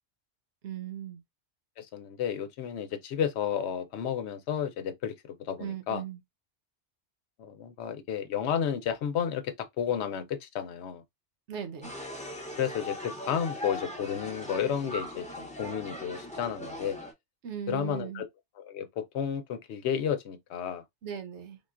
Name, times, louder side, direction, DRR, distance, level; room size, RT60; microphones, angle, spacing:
voice 1, 0.6-1.2 5.6-6.2 11.5-11.9 17.4-18.2 21.0-21.6, right 8 dB, 85° right, 1.0 m, -38 dB
voice 2, 1.8-5.1 5.4-6.0 7.4-11.0 12.6-17.0 17.7-18.3 18.6-20.8, left 8 dB, 75° left, 0.9 m, -32 dB
sound 1, 11.8-17.1, left 1 dB, 10° left, 0.6 m, -40 dB
3.7 x 2.2 x 2.4 m
omnidirectional pair, 1.2 m